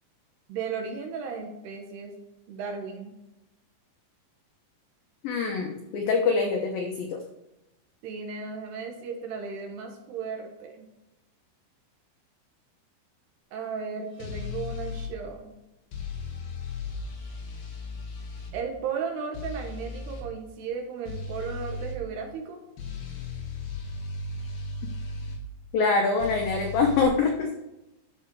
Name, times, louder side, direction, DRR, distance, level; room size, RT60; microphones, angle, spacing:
voice 1, 0.5-2.1 2.5-3.1 8.0-10.9 13.5-15.5 18.5-22.6, right 5 dB, 70° right, 2 dB, 2.9 m, -35 dB
voice 2, 5.2-7.2 25.7-27.5, left 4 dB, 90° left, 2 dB, 2.0 m, -24 dB
sound 1, 14.2-15.1 15.9-18.5 19.3-20.3 21.1-22.0 22.8-25.4 26.2-27.1, left 3 dB, 55° left, 3.5 m, -36 dB
12.5 x 6.7 x 4.6 m, 0.96 s
omnidirectional pair, 5.7 m